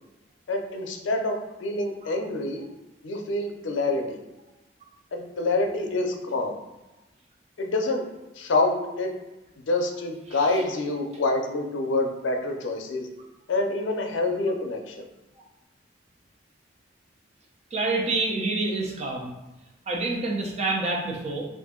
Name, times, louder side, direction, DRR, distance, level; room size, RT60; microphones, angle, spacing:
voice 1, 0.5-2.6 3.0-4.2 5.1-6.5 7.6-8.1 8.4-9.1 9.7-13.1 13.5-15.1, left 2 dB, 80° left, 3 dB, 0.5 m, -27 dB
voice 2, 17.7-19.3 19.9-21.5, right 2 dB, 35° right, -1 dB, 0.5 m, -27 dB
2.6 x 2.5 x 3.6 m, 1.0 s
head